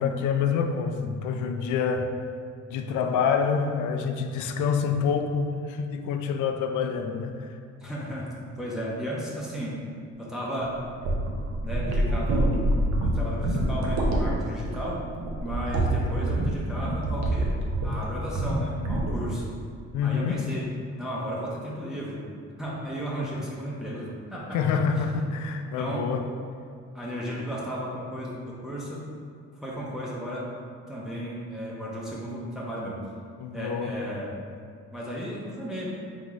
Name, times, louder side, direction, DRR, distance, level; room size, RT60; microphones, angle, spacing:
voice 1, 0.0-2.1 2.7-7.6 19.9-20.4 24.5-26.2 33.4-33.9, left 6 dB, 75° left, 6 dB, 0.5 m, -27 dB
voice 2, 7.8-9.8 10.2-10.8 11.6-12.6 13.0-15.0 15.4-19.5 20.0-20.6 21.0-22.2 22.6-24.6 24.9-25.3 25.8-26.0 26.9-29.0 29.5-30.5 30.9-33.0 33.5-34.3 34.9-35.9, equal, ahead, -6 dB, 0.8 m, -34 dB
sound 1, 10.6-18.1 18.3-18.6 18.9-19.3, right 1 dB, 65° right, 0.8 m, -26 dB
3.8 x 3.7 x 3.1 m, 2.3 s
cardioid pair, 90°, 30 cm